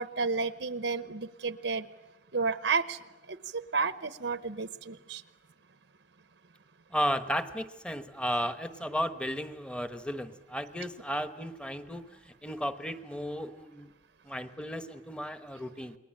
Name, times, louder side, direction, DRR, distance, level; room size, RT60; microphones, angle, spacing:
voice 1, 0.0-1.8 2.3-3.0 3.5-5.2, right 4 dB, 75° right, 12 dB, 1.0 m, -31 dB
voice 2, 6.9-13.9 14.2-16.0, equal, 5° left, 10 dB, 1.2 m, -34 dB
29.0 x 21.5 x 8.9 m, 1.1 s
head